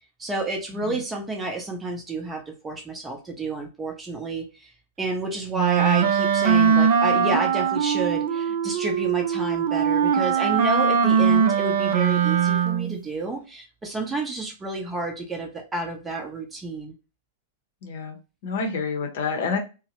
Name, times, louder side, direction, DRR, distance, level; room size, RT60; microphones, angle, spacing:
voice 1, 0.2-4.7 5.0-16.9, right 2 dB, 15° right, 3 dB, 0.6 m, -30 dB
Wind instrument woodwind instrument, 5.5-13.0, right 7 dB, 55° right, 0.4 m, -21 dB
voice 2, 17.8-18.2 18.4-19.6, left 4 dB, 55° left, 3 dB, 0.7 m, -28 dB
2.7 x 2.1 x 2.9 m, 0.31 s
figure-of-eight pair, 100°, 0 cm